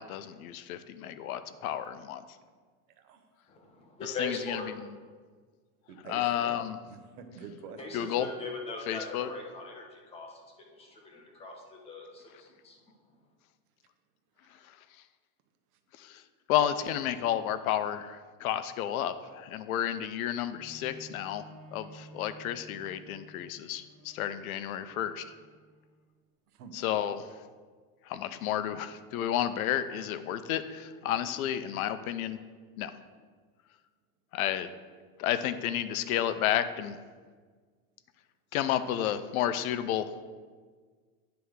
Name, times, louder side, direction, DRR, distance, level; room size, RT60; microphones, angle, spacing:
voice 1, 0.0-2.2 4.0-4.9 6.1-6.8 7.9-8.3 8.9-9.3 14.5-14.8 15.9-16.2 16.5-25.3 26.7-27.4 28.0-32.4 32.8-32.9 34.3-34.7 35.2-37.0 38.5-40.3, left 11 dB, 65° left, 12 dB, 0.6 m, -31 dB
voice 2, 2.9-3.2 5.9-6.6 6.9-8.1 14.4-14.7 15.7-15.8 26.5-26.7, right 5 dB, 70° right, 7 dB, 1.1 m, -47 dB
voice 3, 3.5-4.7 7.8-12.8, left 3 dB, 15° left, 1 dB, 0.7 m, -40 dB
Bowed string instrument, 20.5-26.1 26.8-26.9, right 1 dB, 25° right, 1.5 m, -53 dB
9.2 x 3.4 x 6.3 m, 1.5 s
supercardioid pair, 155°, 46 cm